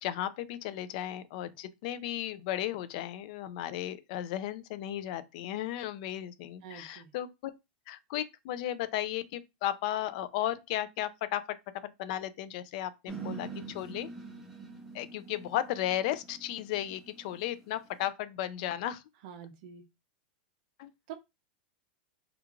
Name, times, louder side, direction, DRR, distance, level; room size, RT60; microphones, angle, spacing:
voice 1, 0.0-7.5 7.9-11.6 11.8-14.1 14.9-19.0 20.8-20.9, left 12 dB, 50° left, 0.3 m, -35 dB
voice 2, 6.6-7.1 19.2-19.8 21.1-21.2, right 8 dB, 55° right, 0.6 m, -46 dB
sound 1, 13.1-18.1, right 5 dB, 5° right, 0.6 m, -45 dB
2.4 x 2.2 x 3.0 m
supercardioid pair, 150°, 5 cm